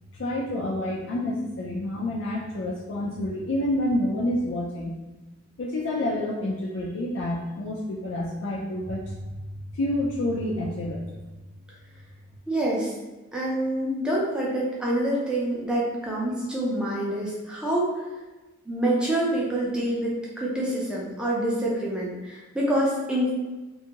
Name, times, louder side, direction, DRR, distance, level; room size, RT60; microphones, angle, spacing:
voice 1, 0.1-5.0 5.6-9.3 9.7-11.1, left 1 dB, 60° left, -4 dB, 0.4 m, -28 dB
voice 2, 12.5-12.9 13.3-18.0 18.7-23.3, right 1 dB, 5° right, -5 dB, 0.5 m, -26 dB
2.6 x 2.3 x 2.8 m, 1.1 s
head